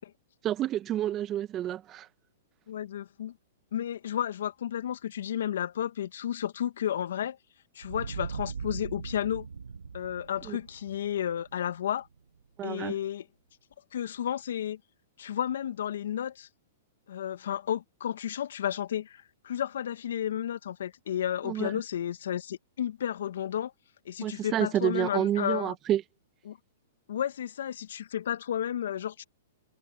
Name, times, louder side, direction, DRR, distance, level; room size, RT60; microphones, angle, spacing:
voice 1, 0.4-2.1 10.5-10.6 12.6-12.9 21.4-21.8 24.2-26.0, right 12 dB, 30° right, 1.2 m, -29 dB
voice 2, 2.7-3.3 3.7-7.4 7.8-9.5 9.9-12.1 12.6-13.3 13.9-14.8 15.2-16.5 17.1-23.7 24.1-25.8 26.5-26.6 27.1-29.2, left 10 dB, 75° left, 1.7 m, -32 dB
sound 1, 7.8-12.4, right 5 dB, 90° right, 1.5 m, -40 dB
hypercardioid pair, 125°, 0 cm